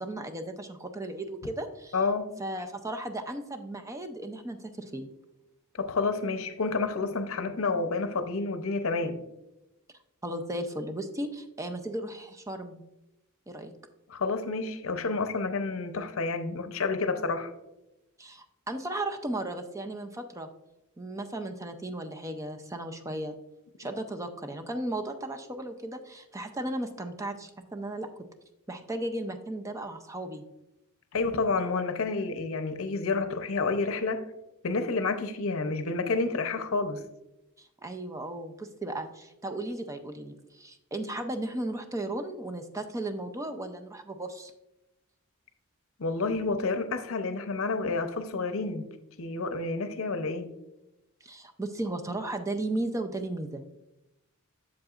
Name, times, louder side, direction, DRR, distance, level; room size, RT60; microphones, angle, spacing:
voice 1, 0.0-2.0 2.4-5.1 10.2-12.8 13.5-13.7 18.2-20.5 21.0-23.4 23.8-28.1 28.7-30.4 37.6-44.5 51.2-53.6, right 1 dB, 15° right, 6 dB, 0.4 m, -35 dB
voice 2, 1.9-2.3 5.8-9.2 14.1-17.5 31.1-34.2 34.6-37.0 46.0-48.8 49.2-50.5, left 3 dB, 65° left, 9 dB, 0.7 m, -29 dB
7.7 x 7.1 x 2.4 m, 0.91 s
head